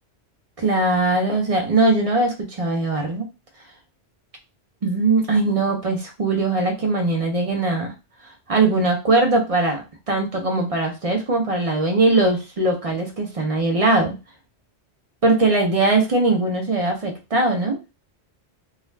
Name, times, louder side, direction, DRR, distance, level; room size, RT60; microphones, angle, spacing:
voice 1, 0.6-3.2 4.8-7.9 8.2-9.8 10.1-14.1 15.2-17.8, right 2 dB, 40° right, 2 dB, 0.6 m, -20 dB
2.4 x 2.3 x 3.1 m, 0.27 s
omnidirectional pair, 1.2 m